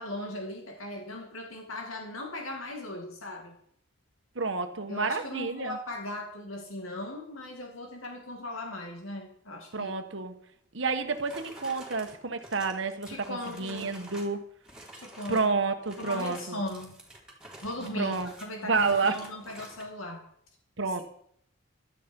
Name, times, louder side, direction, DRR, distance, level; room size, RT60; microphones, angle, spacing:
voice 1, 0.0-3.6 4.9-9.9 13.1-13.9 14.9-15.5 16.0-16.9 17.6-20.2, left 1 dB, 80° left, 2 dB, 2.5 m, -38 dB
voice 2, 4.3-5.8 9.7-10.4 10.7-14.4 15.3-16.6 18.0-18.3 18.6-19.2 20.8-21.0, right 4 dB, 65° right, 6 dB, 1.3 m, -29 dB
sound 1, 10.9-14.4 14.6-15.5 15.8-19.9, right 1 dB, 5° right, 3.3 m, -49 dB
16.0 x 12.0 x 5.4 m, 0.66 s
head